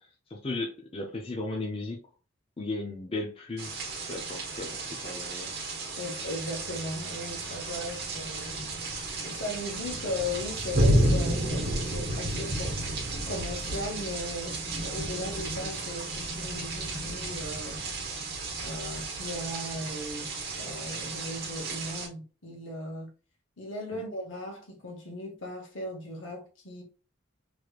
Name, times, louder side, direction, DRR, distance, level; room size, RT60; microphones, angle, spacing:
voice 1, 0.0-2.0 2.6-3.7 4.1-5.5 23.9-24.0, left 2 dB, 30° left, 0.5 m, -36 dB
sound 1, 3.6-22.1, right 1 dB, 55° right, 1.1 m, -32 dB
voice 2, 6.0-8.6 9.2-12.8 13.2-17.8 18.6-23.1 23.6-26.8, left 1 dB, 75° left, 1.2 m, -37 dB
3.2 x 3.1 x 2.4 m
head